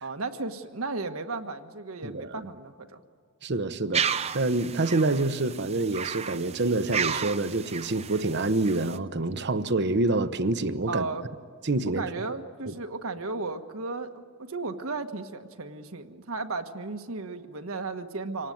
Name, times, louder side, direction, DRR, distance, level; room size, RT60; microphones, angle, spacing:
voice 1, 0.0-3.0 10.9-11.3 12.0-18.5, right 3 dB, 80° right, 1.5 m, -35 dB
voice 2, 2.0-2.4 3.4-11.0 11.6-12.0 12.7-12.8, right 2 dB, 55° right, 0.9 m, -27 dB
sound 1, 3.9-9.0, right 7 dB, 30° right, 0.6 m, -33 dB
26.0 x 19.0 x 9.4 m
head